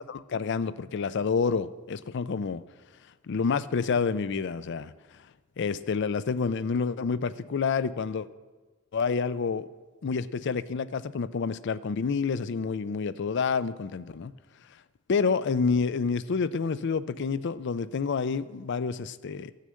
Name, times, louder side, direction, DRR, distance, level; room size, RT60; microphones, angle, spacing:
voice 1, 0.0-2.6 3.3-4.9 5.6-8.3 8.9-9.7 10.0-14.3 15.1-19.5, left 5 dB, 60° left, 16 dB, 0.4 m, -28 dB
14.0 x 6.5 x 7.5 m, 1.3 s
head